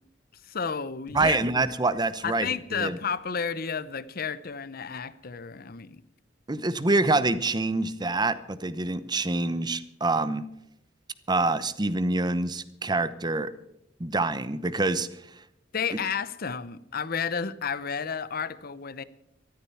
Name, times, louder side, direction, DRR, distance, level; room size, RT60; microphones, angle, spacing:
voice 1, 0.5-1.6 2.2-6.0 15.7-19.0, left 6 dB, 55° left, 0.8 m, -32 dB
sound 1, 1.1-5.0, equal, 90° left, 2.7 m, -51 dB
voice 2, 1.1-3.0 6.5-10.4 11.3-13.5 14.0-15.1, right 2 dB, 25° right, 0.9 m, -26 dB
14.0 x 13.5 x 5.8 m
head